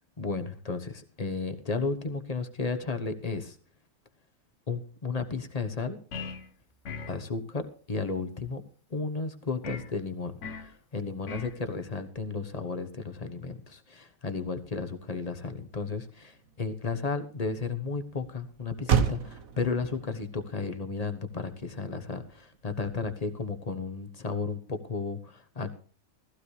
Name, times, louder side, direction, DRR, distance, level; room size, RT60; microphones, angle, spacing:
voice 1, 0.2-3.6 4.7-6.0 7.1-8.6 8.9-25.7, left 4 dB, 30° left, 8 dB, 1.2 m, -33 dB
sound 1, 6.1-6.5 6.8-7.2 9.6-9.9 10.4-10.7 11.3-11.6, left 5 dB, 60° left, 1.3 m, -38 dB
Motor vehicle (road), 15.6-23.4, right 7 dB, 75° right, 1.5 m, -35 dB
15.5 x 15.0 x 3.3 m, 0.41 s
omnidirectional pair, 1.4 m